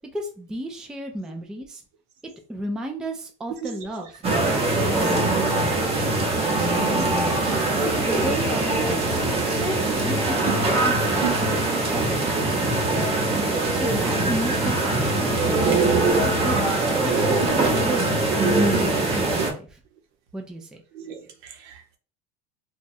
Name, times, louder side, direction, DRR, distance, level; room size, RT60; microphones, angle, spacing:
voice 1, 0.1-1.8 2.5-4.1 4.4-5.8 6.6-7.4 7.8-9.2 9.4-11.5 11.9-12.2 12.5-13.2 13.7-15.5 16.1-18.2 18.5-19.5 20.3-20.7, right 1 dB, 5° right, 0.3 m, -33 dB
voice 2, 3.6-4.0 4.5-4.6 5.0-5.1 7.2-7.9 8.4-8.5 9.2-9.3 10.4-10.5 11.2-11.3 13.2-13.4 17.5-17.6 20.9-22.0, right 10 dB, 70° right, 0.8 m, -35 dB
sound 1, 4.2-19.5, right 2 dB, 30° right, 0.8 m, -22 dB
3.0 x 2.3 x 2.6 m
supercardioid pair, 130°, 20 cm